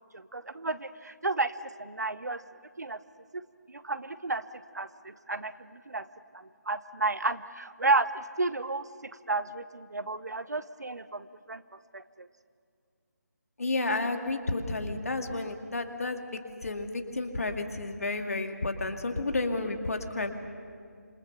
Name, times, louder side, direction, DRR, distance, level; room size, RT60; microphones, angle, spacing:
voice 1, 0.1-2.4 2.8-3.0 3.3-3.4 3.7-4.4 4.7-6.1 6.3-11.6 11.9-12.3, right 3 dB, 70° right, 14 dB, 1.1 m, -32 dB
voice 2, 13.6-20.3, left 2 dB, 55° left, 6 dB, 2.3 m, -31 dB
27.0 x 25.5 x 6.9 m, 2.2 s
figure-of-eight pair, 155°, 9 cm